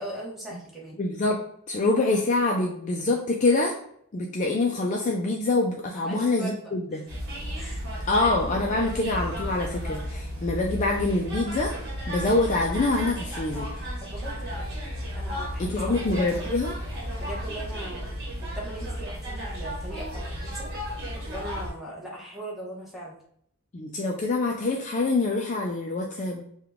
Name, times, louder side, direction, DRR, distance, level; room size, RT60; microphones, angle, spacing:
voice 1, 0.0-1.0 5.9-7.0 7.6-8.2 8.6-8.9 13.0-13.3 14.0-14.7 15.1-16.0 17.2-18.1 18.4-20.7 21.3-23.2, right 1 dB, ahead, -5 dB, 1.0 m, -40 dB
voice 2, 1.0-1.4 1.7-3.8 4.1-7.0 8.1-11.7 12.1-13.7 15.6-16.8 23.7-26.5, left 2 dB, 35° left, 0 dB, 0.3 m, -25 dB
sound 1, 7.1-21.7, equal, 55° right, 1.1 m, -34 dB
3.7 x 2.3 x 3.4 m, 0.68 s
head